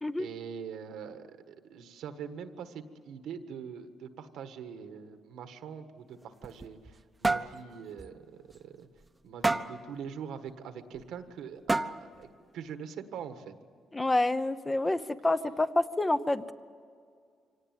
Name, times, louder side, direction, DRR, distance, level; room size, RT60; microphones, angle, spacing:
voice 1, 0.2-8.9 9.2-12.3 12.5-13.5, right 7 dB, 80° right, 9 dB, 1.5 m, -43 dB
sound 1, 6.2-7.0 7.2-7.6 8.0-8.1 8.5-8.6 9.4-9.8 11.0-11.1 11.7-12.2, right 2 dB, 15° right, 0.9 m, -29 dB
voice 2, 13.9-16.5, left 2 dB, 15° left, 11 dB, 0.9 m, -28 dB
24.5 x 18.0 x 9.3 m, 2.2 s
cardioid pair, 90°, 0 cm